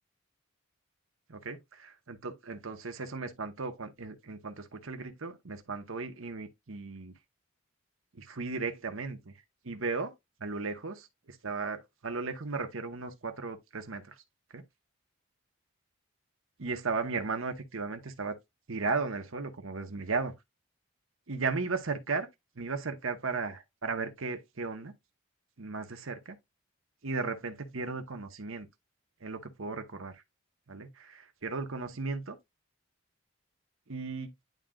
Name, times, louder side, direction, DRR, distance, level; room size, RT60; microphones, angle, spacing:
voice 1, 2.1-7.1 8.1-9.3 9.6-10.1 10.4-14.2 14.5-14.6 16.6-18.4 18.7-20.3 21.3-22.3 22.5-24.9 25.6-26.4 27.0-28.7 29.2-30.2 30.7-32.4 33.9-34.3, right 4 dB, 75° right, 1.1 m, -36 dB
10.5 x 3.8 x 2.4 m
head